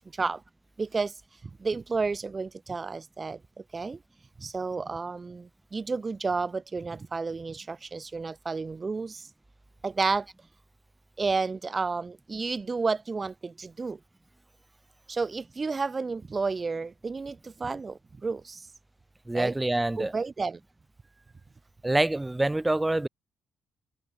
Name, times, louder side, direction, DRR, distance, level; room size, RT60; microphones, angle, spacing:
voice 1, 0.8-1.1 1.4-4.0 4.4-9.3 9.8-10.3 11.2-14.0 15.1-18.6 19.3-19.6 20.0-20.6, right 4 dB, 30° right, 2.3 m, -31 dB
voice 2, 19.3-20.1 21.8-23.1, right 2 dB, 15° right, 0.7 m, -26 dB
figure-of-eight pair, 40°, 0 cm